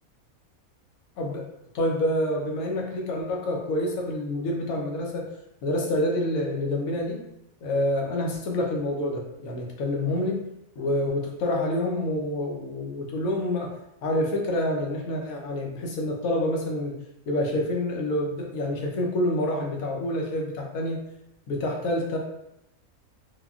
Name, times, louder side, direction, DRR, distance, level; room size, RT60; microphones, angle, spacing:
voice 1, 1.2-5.3 5.6-7.2 7.6-10.4 10.8-13.8 14.0-21.0 21.5-22.2, left 1 dB, 80° left, 0 dB, 1.1 m, -27 dB
3.5 x 2.2 x 2.3 m, 0.82 s
omnidirectional pair, 1.5 m